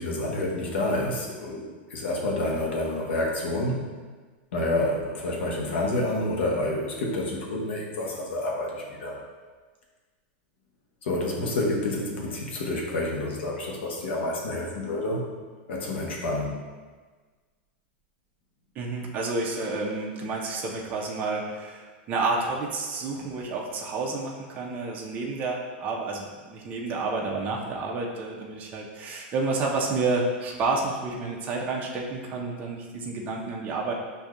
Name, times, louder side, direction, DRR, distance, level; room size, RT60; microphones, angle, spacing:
voice 1, 0.0-3.8 4.5-9.2 11.0-15.2 15.7-16.5, left 1 dB, 80° left, -2 dB, 1.0 m, -28 dB
voice 2, 18.8-33.9, right 3 dB, 30° right, -1 dB, 0.5 m, -30 dB
6.5 x 2.6 x 2.4 m, 1.4 s
supercardioid pair, 145°, 6 cm